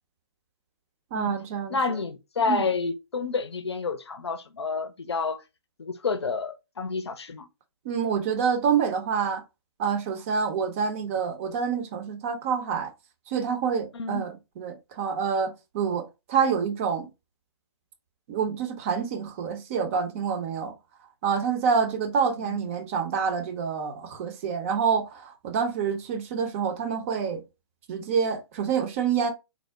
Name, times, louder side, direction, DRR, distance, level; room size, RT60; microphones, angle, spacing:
voice 1, 1.1-2.0 2.5-2.6 7.8-9.4 9.8-12.9 13.3-17.1 18.3-20.7 21.2-27.4 27.9-29.3, right 6 dB, 30° right, 0.6 m, -27 dB
voice 2, 1.7-5.4 5.8-7.5 13.9-14.2 22.4-22.7, left 4 dB, 65° left, 0.6 m, -29 dB
3.6 x 2.1 x 3.4 m
figure-of-eight pair, 130°, 15 cm